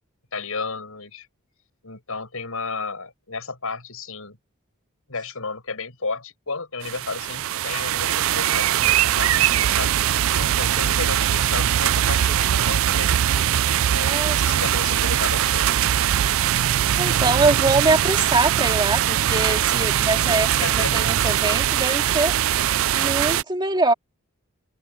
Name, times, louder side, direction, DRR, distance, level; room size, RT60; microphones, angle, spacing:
voice 1, 0.3-1.3 1.8-4.4 5.1-9.9 10.4-13.1 13.7-16.1 20.5-21.2, left 4 dB, 75° left, 6.3 m, -33 dB
sound 1, 6.8-23.4, right 11 dB, 65° right, 0.4 m, -21 dB
voice 2, 13.9-14.5 17.0-22.4 22.9-23.9, right 3 dB, 20° right, 2.6 m, -23 dB
head